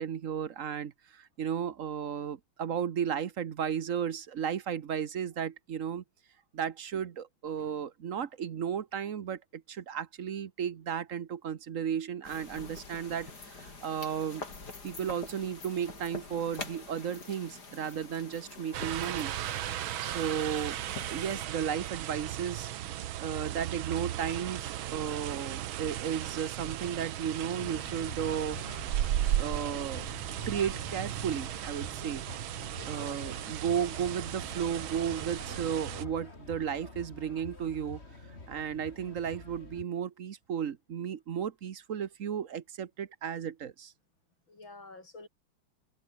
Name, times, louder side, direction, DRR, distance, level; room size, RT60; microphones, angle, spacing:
voice 1, 0.0-6.0 6.5-14.5 14.8-19.3 20.0-20.8 21.1-22.7 23.2-28.6 29.4-30.1 30.4-32.3 32.9-38.0 38.5-43.9, right 8 dB, 50° right, 1.1 m, -34 dB
sound 1, 12.2-21.4, left 3 dB, 50° left, 4.3 m, -46 dB
sound 2, 18.7-36.1, right 12 dB, 75° right, 1.7 m, -36 dB
sound 3, 27.6-39.8, left 3 dB, 30° left, 3.6 m, -47 dB
voice 2, 32.7-33.1 44.5-45.3, left 3 dB, 65° left, 6.3 m, -50 dB
omnidirectional pair, 2.3 m